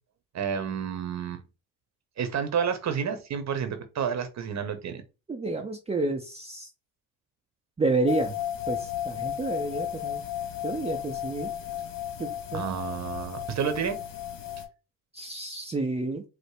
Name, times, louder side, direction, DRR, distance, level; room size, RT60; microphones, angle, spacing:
voice 1, 0.3-1.4 2.2-5.0 12.5-14.0, right 7 dB, 50° right, 0.9 m, -30 dB
voice 2, 5.3-6.7 7.8-8.3 8.7-10.2 10.6-11.5 12.2-12.8 15.1-16.2, right 3 dB, 15° right, 0.6 m, -30 dB
sound 1, 8.1-14.6, left 11 dB, 65° left, 1.0 m, -34 dB
4.9 x 2.1 x 4.5 m
supercardioid pair, 80°, 36 cm